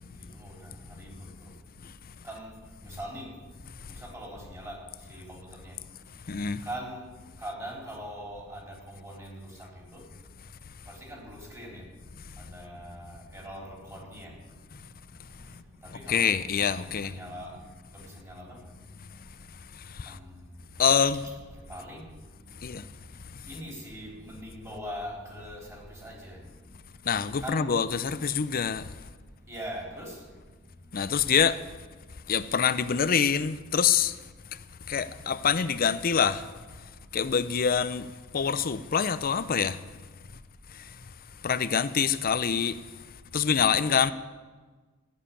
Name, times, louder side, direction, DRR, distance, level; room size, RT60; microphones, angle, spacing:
voice 1, 2.8-3.3 4.1-4.8 5.1-5.7 6.7-7.0 7.4-9.4 9.9-10.0 11.1-11.8 12.5-14.3 15.8-16.4 16.8-17.5 17.9-18.6 20.1-20.2 21.7-22.1 23.5-26.4 27.4-27.7 29.5-30.1, equal, 15° right, 3.8 m, -41 dB
voice 2, 6.3-6.7 15.9-17.2 19.7-20.2 20.8-21.3 22.6-22.9 27.1-28.9 30.9-31.6 32.3-34.2 34.9-36.5 37.1-39.8 40.7-41.0 41.4-42.8 43.3-44.1, left 7 dB, 45° left, 0.5 m, -26 dB
14.0 x 7.3 x 9.9 m
head